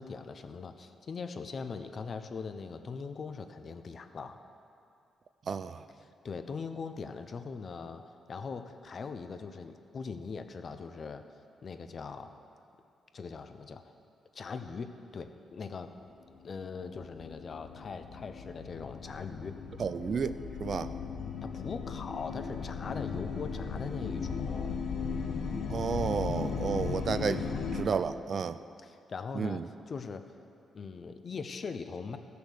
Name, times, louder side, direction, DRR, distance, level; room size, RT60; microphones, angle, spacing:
voice 1, 0.0-4.4 6.0-8.0 8.3-11.2 11.6-12.3 13.1-13.9 14.3-15.9 16.4-19.6 21.4-24.8 27.2-27.6 28.8-30.2 30.7-32.2, left 5 dB, 45° left, 8 dB, 0.6 m, -41 dB
voice 2, 5.5-5.8 19.8-20.4 20.6-20.9 25.7-28.6 29.3-29.6, right 6 dB, 50° right, 13 dB, 0.4 m, -32 dB
sound 1, 16.3-27.8, left 5 dB, 80° left, 0.9 m, -37 dB
14.0 x 6.9 x 6.4 m, 2.5 s
cardioid pair, 120°, 0 cm